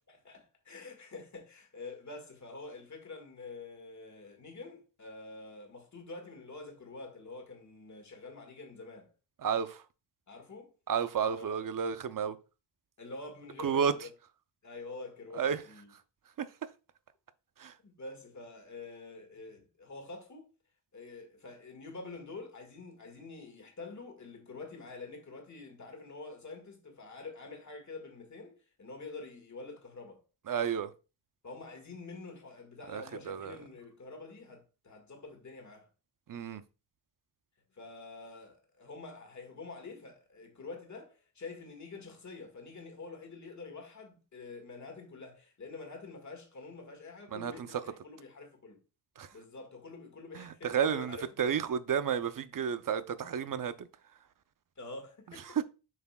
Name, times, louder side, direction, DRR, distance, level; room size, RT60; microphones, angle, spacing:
voice 1, 0.1-9.1 10.3-10.7 11.2-11.7 13.0-14.1 14.6-15.9 17.8-20.5 20.9-30.2 31.4-35.9 37.7-48.8 49.3-51.3 54.8-55.6, left 3 dB, 40° left, 1.8 m, -47 dB
voice 2, 9.4-9.8 10.9-12.4 13.6-13.9 15.4-15.6 16.4-16.5 17.6-17.7 30.5-30.9 32.9-33.6 36.3-36.6 47.3-47.5 49.2-49.3 50.4-53.7, right 7 dB, 50° right, 0.6 m, -31 dB
7.6 x 5.8 x 2.3 m
wide cardioid pair, 170°, 43 cm